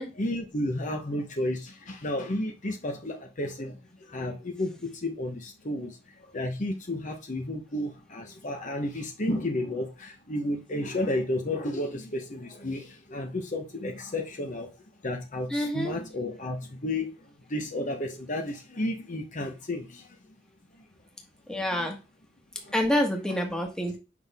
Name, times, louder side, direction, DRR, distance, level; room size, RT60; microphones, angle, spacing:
voice 1, 0.1-3.8 4.1-14.7 15.0-20.2 21.8-21.9 22.6-22.7, left 1 dB, 40° left, 1.1 m, -32 dB
voice 2, 15.5-16.0 21.5-22.0 22.7-24.0, equal, 5° left, 1.6 m, -27 dB
7.9 x 5.8 x 3.6 m
head